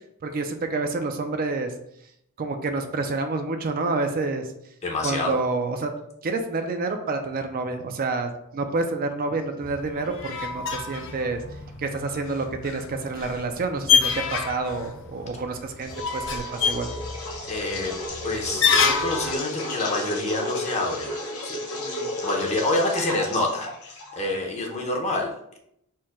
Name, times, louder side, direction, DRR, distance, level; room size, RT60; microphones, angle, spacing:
voice 1, 0.2-1.7 2.4-4.5 5.0-5.9 6.2-11.4 11.8-16.9 21.8-22.1, right 3 dB, 40° right, 6 dB, 0.4 m, -28 dB
voice 2, 4.8-5.4 17.5-17.9 18.2-21.1 21.4-21.6 22.2-25.6, left 2 dB, 30° left, 0 dB, 0.8 m, -27 dB
sound 1, 9.6-19.3, left 6 dB, 60° left, 0.5 m, -27 dB
sound 2, 15.8-24.3, left 1 dB, 75° left, 1.1 m, -33 dB
4.5 x 2.2 x 4.6 m, 0.75 s
head